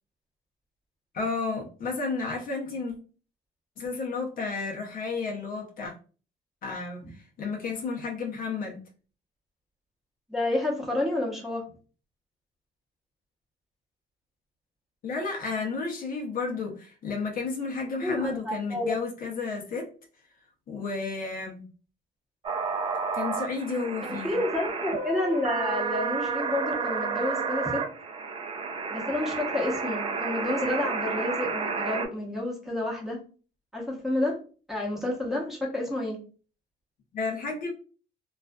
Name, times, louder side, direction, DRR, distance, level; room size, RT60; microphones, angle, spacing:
voice 1, 1.1-3.0 3.8-5.9 6.6-8.8 15.0-19.9 20.7-21.7 23.1-24.4 37.1-37.7, left 4 dB, 55° left, 0 dB, 0.7 m, -32 dB
voice 2, 10.3-11.6 18.0-19.0 24.0-27.8 28.9-33.2 33.7-34.3 34.7-36.2, left 1 dB, ahead, -4 dB, 0.9 m, -30 dB
sound 1, 22.4-32.1, right 5 dB, 30° right, 0.5 m, -31 dB
2.4 x 2.4 x 2.2 m, 0.38 s
cardioid pair, 105°, 17 cm